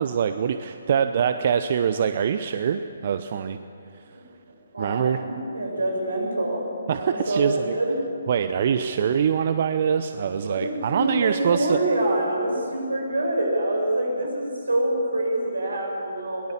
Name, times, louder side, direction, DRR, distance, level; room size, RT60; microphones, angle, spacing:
voice 1, 0.0-3.6 3.9-4.0 4.8-5.2 6.9-7.8 8.3-11.8, right 7 dB, 45° right, 10 dB, 0.7 m, -24 dB
voice 2, 4.7-6.7 6.9-8.0 8.5-8.8 10.4-16.5, right 1 dB, 85° right, 0 dB, 7.0 m, -26 dB
22.5 x 18.5 x 7.3 m, 2.6 s
figure-of-eight pair, 140°, 0 cm